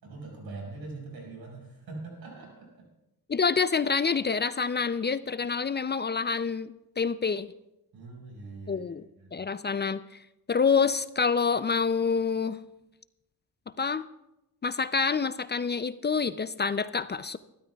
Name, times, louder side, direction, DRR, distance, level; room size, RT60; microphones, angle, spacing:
voice 1, 0.0-2.8 7.9-9.4, right 3 dB, 90° right, -1 dB, 5.3 m, -43 dB
voice 2, 3.3-7.5 8.7-9.0 9.3-10.0 10.5-12.6 13.8-14.1 14.6-17.4, left 5 dB, 30° left, 14 dB, 0.4 m, -27 dB
22.0 x 13.0 x 2.3 m, 0.90 s
cardioid pair, 85°, 37 cm